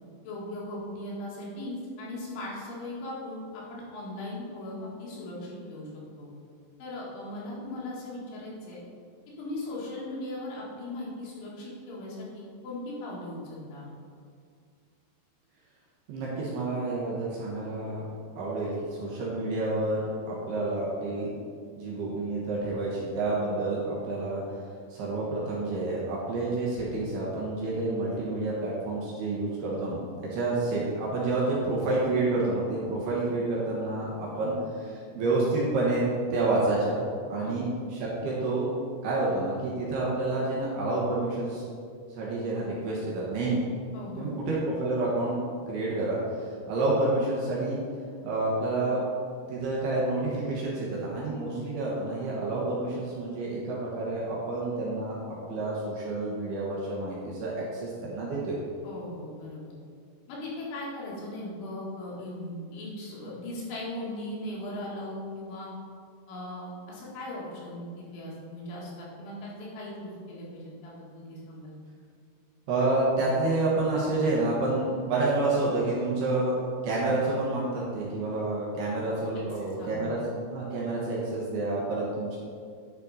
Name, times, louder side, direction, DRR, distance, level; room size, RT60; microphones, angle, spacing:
voice 1, 0.2-5.9 6.2-6.3 6.8-8.8 9.4-13.9 34.3-34.5 37.4-37.5 43.9-44.3 58.8-59.7 60.3-65.7 66.3-71.8 79.8-80.1, left 1 dB, 75° left, -6 dB, 4.1 m, -38 dB
voice 2, 16.1-18.0 18.4-21.3 21.7-24.4 24.9-34.5 34.8-36.0 36.3-37.0 37.3-38.7 39.0-41.6 42.1-43.6 44.2-45.4 45.7-47.8 48.2-49.1 49.5-55.2 55.5-58.6 72.7-80.2 80.5-82.4, right 2 dB, 70° right, -5 dB, 2.8 m, -29 dB
10.5 x 5.2 x 4.1 m, 2.2 s
omnidirectional pair, 5.5 m